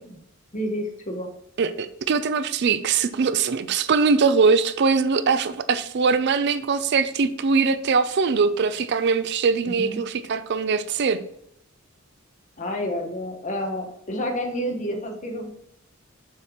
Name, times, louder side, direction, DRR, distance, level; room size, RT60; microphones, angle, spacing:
voice 1, 0.5-1.3 9.6-10.0 12.6-15.5, equal, 35° left, 3 dB, 1.1 m, -29 dB
voice 2, 1.6-11.2, right 5 dB, 55° right, 13 dB, 0.4 m, -22 dB
7.3 x 5.7 x 3.0 m, 0.77 s
head